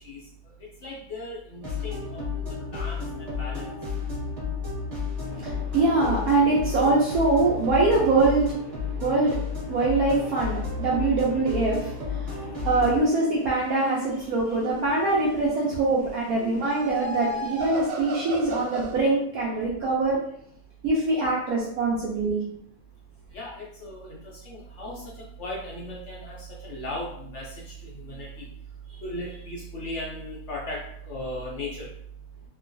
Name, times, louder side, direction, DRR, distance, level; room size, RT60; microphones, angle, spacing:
voice 1, 0.8-3.7 23.3-24.2 24.4-27.5 27.8-28.5 29.0-31.9, left 1 dB, 75° left, -4 dB, 0.6 m, -37 dB
sound 1, 1.6-13.0, left 5 dB, 25° right, 1.0 m, -32 dB
voice 2, 5.2-20.2 20.8-22.4, right 3 dB, 70° right, -5 dB, 0.9 m, -24 dB
sound 2, 14.4-15.4 16.4-19.0, right 1 dB, 90° right, 1.2 m, -35 dB
3.0 x 2.2 x 2.5 m, 0.70 s
omnidirectional pair, 1.8 m